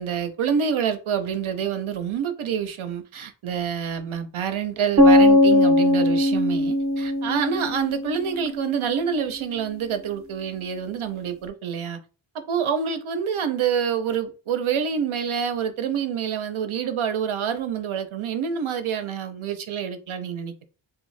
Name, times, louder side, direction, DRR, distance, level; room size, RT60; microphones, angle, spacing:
voice 1, 0.0-12.0 12.3-20.7, right 7 dB, 80° right, 0.6 m, -27 dB
sound 1, 5.0-8.9, left 1 dB, 35° right, 0.6 m, -19 dB
2.6 x 2.2 x 3.1 m
wide cardioid pair, 45°, 48 cm